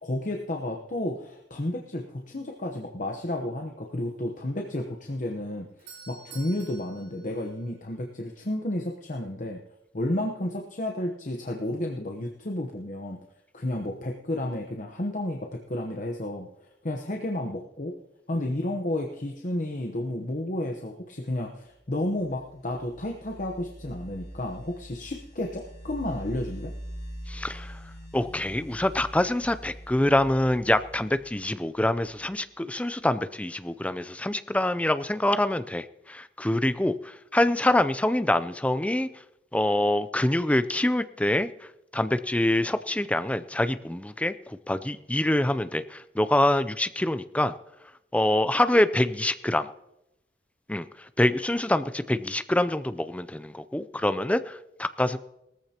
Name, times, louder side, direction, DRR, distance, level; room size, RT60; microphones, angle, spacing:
voice 1, 0.0-9.6 9.9-13.2 13.5-17.9 18.3-26.7, left 1 dB, 45° left, 2 dB, 1.0 m, -32 dB
Doorbell, 5.7-8.3, right 4 dB, 65° right, 5.9 m, -50 dB
sound 1, 21.9-32.4, equal, 25° left, 6.1 m, -43 dB
voice 2, 27.3-27.8 28.1-39.1 39.5-41.5 41.9-47.5 48.1-49.7 50.7-50.9 51.2-55.2, left 1 dB, 5° left, 12 dB, 0.4 m, -25 dB
19.0 x 14.0 x 2.9 m, 0.87 s
head